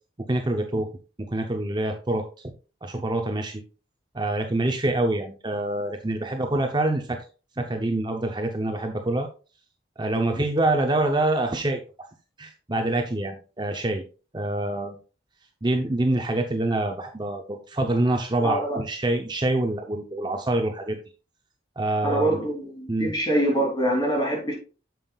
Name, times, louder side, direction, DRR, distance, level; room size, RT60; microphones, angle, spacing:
voice 1, 0.3-0.9 1.2-2.5 2.8-3.6 4.1-7.2 7.6-9.3 10.0-11.8 12.4-14.0 14.3-15.0 15.6-21.0 21.8-22.4 22.9-23.1, right 2 dB, 25° right, 0.6 m, -26 dB
voice 2, 18.4-18.8 22.0-24.5, right 1 dB, 25° left, 3.0 m, -24 dB
9.1 x 7.2 x 2.3 m
head